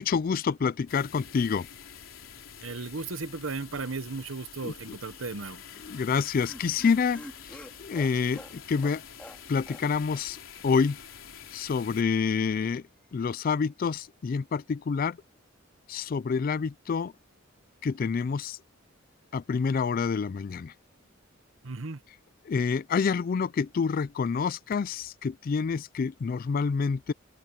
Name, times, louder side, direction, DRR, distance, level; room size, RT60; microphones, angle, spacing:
voice 1, 0.0-1.7 4.6-4.7 5.9-7.2 7.8-9.0 9.5-11.0 11.5-12.8 13.1-15.2 15.9-17.1 17.8-18.6 19.3-20.7 22.5-27.1, left 5 dB, 45° left, 0.3 m, -27 dB
sound 1, 0.9-12.0, left 8 dB, 80° left, 3.6 m, -47 dB
voice 2, 2.6-5.6 21.6-22.0, right 3 dB, 80° right, 1.1 m, -35 dB
Laughter, 5.8-9.9 10.1-10.2 10.5-10.6, equal, 5° left, 3.1 m, -47 dB
open air
head